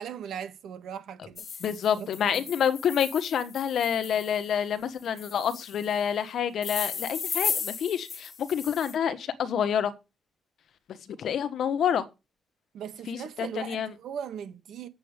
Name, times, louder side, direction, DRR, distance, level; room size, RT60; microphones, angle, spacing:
voice 1, 0.0-1.4 1.9-2.4 12.7-14.9, right 8 dB, 75° right, 1.6 m, -39 dB
sound 1, 1.4-4.5 5.2-6.0 6.6-8.9, left 6 dB, 40° left, 1.2 m, -36 dB
voice 2, 1.6-9.9 11.0-12.1 13.1-13.9, left 8 dB, 65° left, 1.3 m, -28 dB
8.9 x 7.7 x 5.1 m
cardioid pair, 145°, 0 cm